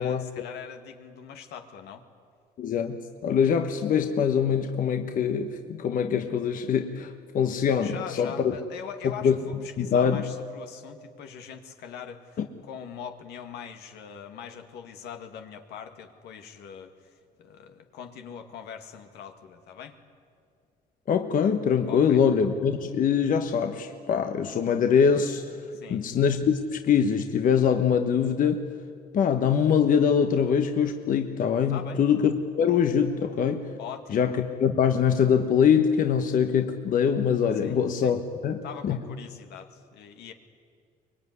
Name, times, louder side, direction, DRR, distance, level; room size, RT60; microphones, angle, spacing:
voice 1, 0.0-2.0 7.8-20.0 21.8-22.2 25.7-26.0 31.7-32.0 33.8-34.3 37.6-38.2 38.6-40.3, left 8 dB, 80° left, 6 dB, 2.1 m, -42 dB
voice 2, 2.6-8.5 9.0-9.4 9.8-10.2 12.4-12.5 21.1-25.6 25.9-28.6 29.1-33.7 34.1-39.0, left 7 dB, 55° left, 6 dB, 1.3 m, -23 dB
24.0 x 21.5 x 9.7 m, 2.2 s
cardioid pair, 110°, 17 cm